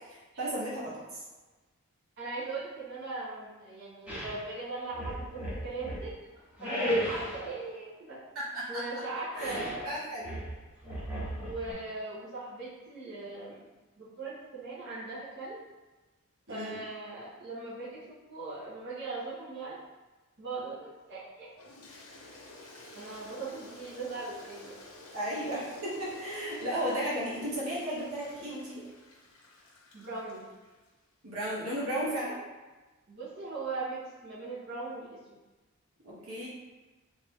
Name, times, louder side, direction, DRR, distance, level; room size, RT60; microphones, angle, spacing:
voice 1, 0.1-1.2 8.3-8.6 9.3-9.6 9.8-10.3 16.5-16.8 25.1-28.8 31.2-32.4 36.0-36.5, right 1 dB, 75° right, -7 dB, 1.2 m, -34 dB
voice 2, 2.2-6.1 6.6-8.2 8.7-9.8 11.4-13.6 14.0-15.6 16.5-19.8 20.4-21.5 22.9-24.8 29.9-30.4 33.1-35.2, right 3 dB, 50° right, -10 dB, 1.1 m, -39 dB
sound 1, 4.1-4.4 4.9-6.1 6.6-7.5 9.3-9.8 10.2-11.7, equal, 5° right, 1.0 m, -34 dB
Toilet flush, 21.6-30.9, left 2 dB, 70° left, 0.7 m, -51 dB
3.3 x 2.8 x 3.5 m, 1.2 s
head